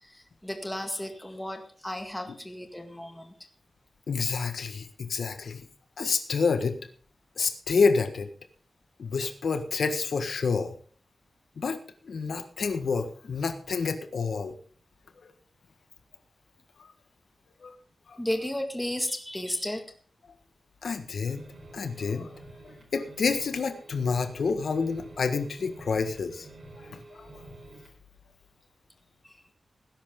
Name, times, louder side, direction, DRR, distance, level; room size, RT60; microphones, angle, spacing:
voice 1, 0.0-3.3 18.2-19.8 29.2-29.4, left 1 dB, 5° left, 5 dB, 1.9 m, -34 dB
voice 2, 4.1-5.6 6.0-6.8 7.4-8.3 9.0-10.7 11.6-11.8 12.0-14.5 16.8-16.9 17.6-17.7 18.1-18.2 20.8-21.4 21.7-22.4 22.9-26.5 26.8-27.3, left 5 dB, 75° left, 8 dB, 1.5 m, -28 dB
sound 1, 21.2-28.0, right 2 dB, 45° right, 4.8 m, -49 dB
18.5 x 10.5 x 3.8 m, 0.44 s
wide cardioid pair, 180°, 0 cm